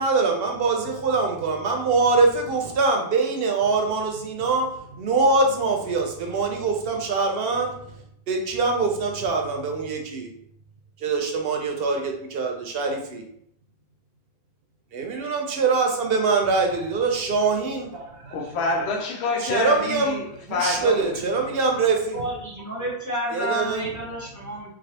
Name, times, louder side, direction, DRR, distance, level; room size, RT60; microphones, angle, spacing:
voice 1, 0.0-7.7 8.3-10.3 11.0-13.2 14.9-18.3 19.4-20.2 20.5-22.2 23.3-23.9, right 4 dB, 70° right, 0.7 m, -23 dB
voice 2, 18.3-21.2, left 3 dB, 80° left, 0.9 m, -27 dB
voice 3, 22.1-24.7, right 1 dB, 20° right, 0.7 m, -30 dB
3.2 x 2.3 x 2.7 m
omnidirectional pair, 1.1 m